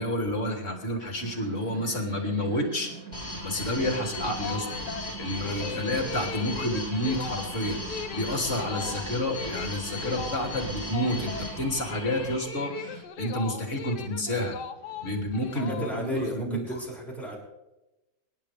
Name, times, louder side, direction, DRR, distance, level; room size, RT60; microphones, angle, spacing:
voice 1, 0.0-2.9 3.4-4.7 5.2-14.6 15.0-16.8, left 1 dB, 45° left, 2 dB, 3.3 m, -30 dB
sound 1, 1.2-13.0, right 4 dB, 60° right, 3.0 m, -44 dB
sound 2, 3.1-12.5, left 2 dB, 20° left, 4.7 m, -37 dB
sound 3, 4.4-16.3, left 7 dB, 80° left, 1.5 m, -39 dB
voice 2, 5.4-6.0 15.5-17.4, equal, ahead, -4 dB, 6.5 m, -35 dB
26.0 x 11.5 x 3.5 m, 0.97 s
omnidirectional pair, 1.8 m